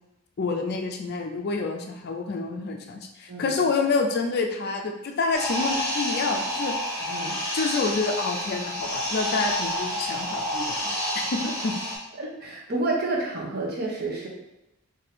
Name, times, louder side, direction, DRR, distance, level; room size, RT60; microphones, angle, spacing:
voice 1, 0.4-6.7 7.5-11.8, left 4 dB, 45° left, 3 dB, 0.4 m, -28 dB
voice 2, 3.3-3.6 7.0-7.4 12.2-14.3, right 2 dB, 45° right, -3 dB, 0.8 m, -29 dB
sound 1, 5.3-12.0, equal, 15° left, 1.2 m, -29 dB
2.7 x 2.6 x 4.1 m, 0.96 s
head